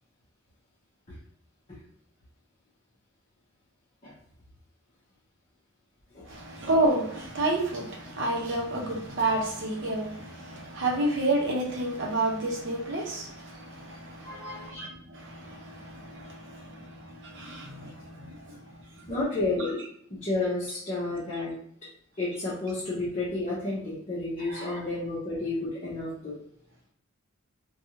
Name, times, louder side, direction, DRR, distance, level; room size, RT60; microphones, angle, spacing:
voice 1, 6.3-18.6 19.0-19.1 19.6-19.7 24.5-24.8, right 2 dB, 55° right, -1 dB, 0.7 m, -30 dB
voice 2, 14.2-14.6 19.1-19.8 20.1-21.5 22.2-26.3, left 2 dB, 30° left, -10 dB, 0.8 m, -31 dB
2.6 x 2.3 x 2.8 m, 0.68 s
head